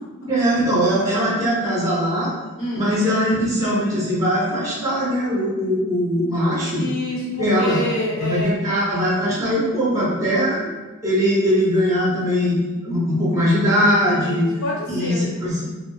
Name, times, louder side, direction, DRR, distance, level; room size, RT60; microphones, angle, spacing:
voice 1, 0.3-2.3 2.7-6.8 7.4-7.8 8.2-10.7 11.0-14.5 14.9-15.7, equal, 15° right, -7 dB, 0.6 m, -20 dB
voice 2, 2.6-2.9 6.8-8.7 14.1-15.2, left 1 dB, 60° left, -4 dB, 0.6 m, -27 dB
2.5 x 2.0 x 3.0 m, 1.3 s
head